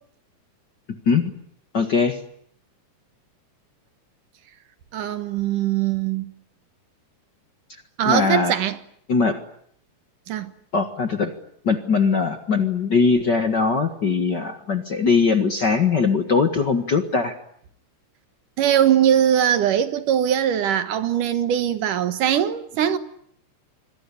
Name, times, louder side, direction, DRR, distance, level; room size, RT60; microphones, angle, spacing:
voice 1, 1.7-2.2 8.0-8.5 9.1-9.4 10.7-11.3 11.6-17.3, left 5 dB, 40° left, 1.7 m, -20 dB
voice 2, 4.9-6.3 8.0-8.8 10.3-10.5 18.6-23.0, right 10 dB, 75° right, 3.0 m, -21 dB
27.0 x 22.5 x 9.9 m
omnidirectional pair, 3.8 m